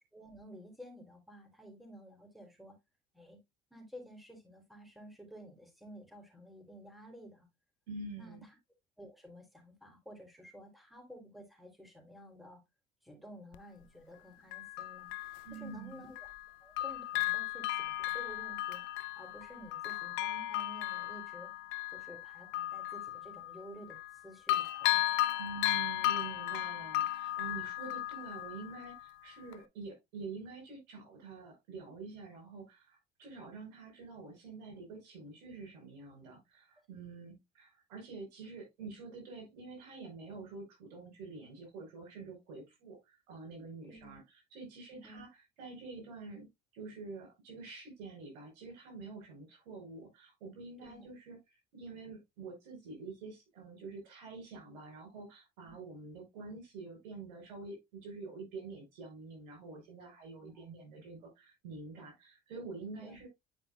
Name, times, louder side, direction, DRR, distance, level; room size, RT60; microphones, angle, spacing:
voice 1, 0.1-2.8 3.1-3.4 3.7-7.5 8.2-8.4 9.0-12.6 13.0-15.1 15.5-16.1 16.6-18.8 19.2-21.5 21.9-24.0 24.2-25.1 43.9-44.2 44.9-45.2 50.8-51.1 60.4-60.6 63.0-63.2, equal, ahead, 3.7 m, -52 dB
voice 2, 7.9-8.5 15.4-16.0 25.3-44.2 44.5-46.5 46.7-63.3, right 4 dB, 85° right, 5.0 m, -47 dB
Bell, 13.5-13.6 14.5-16.5 16.8-24.2 24.5-29.1 29.5-29.6, left 15 dB, 70° left, 0.7 m, -35 dB
10.5 x 5.1 x 2.4 m
supercardioid pair, 80°, 21 cm